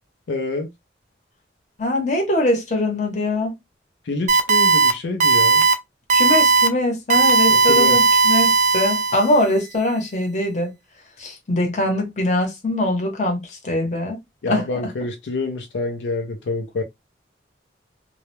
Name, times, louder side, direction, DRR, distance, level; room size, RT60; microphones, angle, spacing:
voice 1, 0.3-0.7 4.1-5.6 7.5-8.0 14.4-16.8, left 3 dB, 85° left, 0.4 m, -27 dB
voice 2, 1.8-3.5 6.1-10.7 11.2-14.2 14.5-14.9, left 1 dB, 40° left, 0.8 m, -22 dB
sound 1, 4.3-4.9 5.2-5.7 6.1-6.7 7.1-9.4, right 4 dB, 40° right, 0.4 m, -16 dB
2.2 x 2.1 x 2.9 m
head